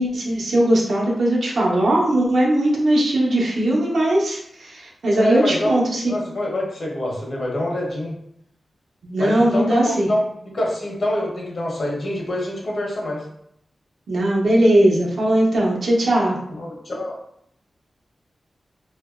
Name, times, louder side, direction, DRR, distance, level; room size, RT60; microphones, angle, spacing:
voice 1, 0.0-6.1 9.0-10.1 14.1-16.4, right 1 dB, 85° right, -4 dB, 0.8 m, -19 dB
voice 2, 5.1-5.7 6.1-8.1 9.2-10.2 10.5-13.2 16.5-17.1, left 1 dB, 65° left, -2 dB, 0.8 m, -25 dB
2.9 x 2.5 x 2.3 m, 0.74 s
wide cardioid pair, 90°, 0 cm